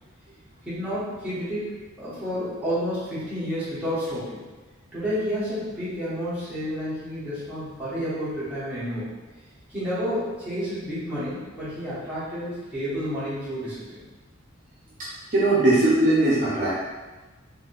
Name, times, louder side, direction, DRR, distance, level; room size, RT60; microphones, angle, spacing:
voice 1, 0.6-4.4 4.9-9.1 9.7-14.0, equal, 5° right, -13 dB, 1.4 m, -30 dB
voice 2, 15.0-16.8, right 2 dB, 40° right, -10 dB, 0.8 m, -20 dB
3.8 x 2.7 x 2.5 m, 1.2 s
head